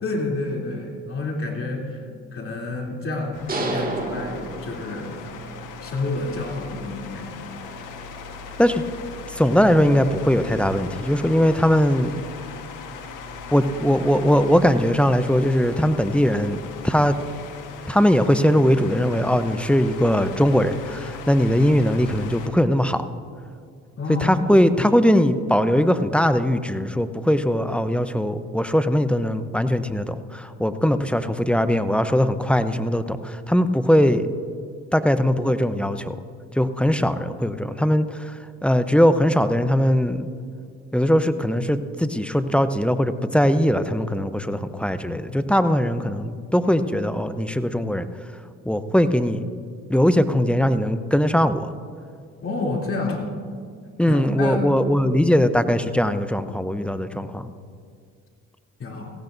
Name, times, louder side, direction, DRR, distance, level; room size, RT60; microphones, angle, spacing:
voice 1, 0.0-2.0 2.3-5.2 5.8-7.4 24.0-24.4 52.4-53.3 54.1-54.6 55.1-55.4 58.8-59.1, left 3 dB, 45° left, -1 dB, 3.1 m, -29 dB
sound 1, 3.3-22.5, left 4 dB, 75° left, 1.4 m, -38 dB
sound 2, 3.5-5.3, right 2 dB, 30° right, 2.1 m, -29 dB
voice 2, 9.3-12.2 13.5-16.6 16.8-17.2 17.9-23.0 24.1-34.3 34.9-36.2 36.5-40.3 40.9-48.1 48.7-49.5 49.9-51.7 54.0-57.5, equal, 5° left, 11 dB, 0.7 m, -20 dB
18.0 x 15.5 x 2.6 m, 2.2 s
supercardioid pair, 70°, 32 cm